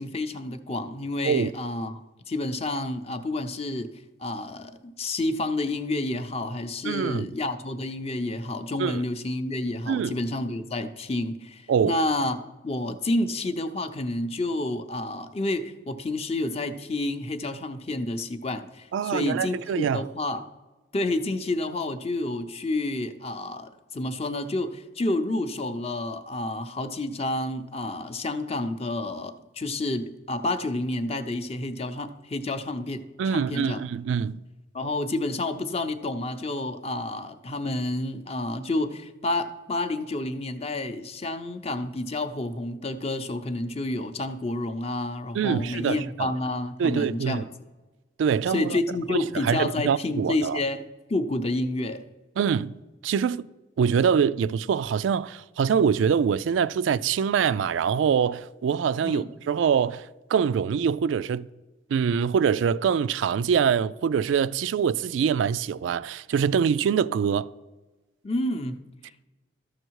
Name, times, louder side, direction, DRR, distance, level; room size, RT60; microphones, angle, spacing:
voice 1, 0.0-2.0 2.3-3.9 4.2-20.5 20.9-33.8 34.7-47.5 48.5-52.0 59.0-59.3 68.2-68.8, left 2 dB, 30° left, 0.6 m, -29 dB
voice 2, 6.8-7.3 8.8-9.0 9.9-10.2 11.7-12.0 18.9-20.0 33.2-34.4 45.3-46.3 46.8-47.4 48.2-48.8 49.1-50.6 52.4-53.5 53.8-61.5 61.9-67.5, right 7 dB, 80° right, 0.3 m, -24 dB
13.0 x 6.6 x 4.6 m
head